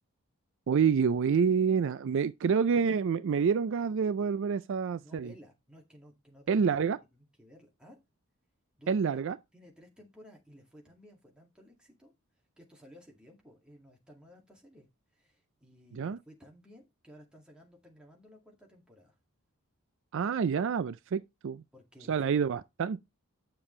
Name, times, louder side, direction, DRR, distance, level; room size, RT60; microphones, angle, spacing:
voice 1, 0.7-5.3 6.5-7.0 8.9-9.4 15.9-16.2 20.1-21.6 22.1-23.1, right 6 dB, 60° right, 0.4 m, -28 dB
voice 2, 5.0-6.7 7.1-8.0 8.8-9.2 9.5-12.1 12.6-14.9 15.1-19.2 21.7-22.2, equal, 5° right, 2.1 m, -56 dB
8.8 x 6.8 x 3.2 m
head